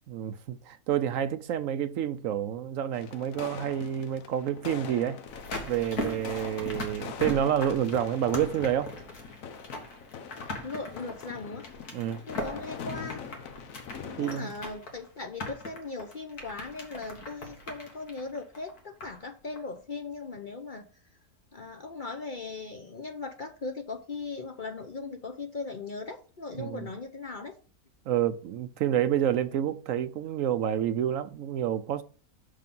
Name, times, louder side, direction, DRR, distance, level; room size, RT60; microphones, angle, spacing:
voice 1, 0.1-5.2 5.7-8.9 11.9-12.2 14.2-14.5 26.6-26.9 28.1-32.0, right 10 dB, 70° right, 0.9 m, -29 dB
sound 1, 2.9-14.6, left 7 dB, 65° left, 1.2 m, -43 dB
sound 2, 5.3-19.3 19.6-19.7, left 2 dB, 90° left, 2.2 m, -40 dB
voice 2, 10.6-11.7 12.3-13.2 14.0-20.9 21.5-27.6, left 3 dB, 45° left, 0.7 m, -38 dB
6.6 x 5.0 x 5.4 m
omnidirectional pair, 1.6 m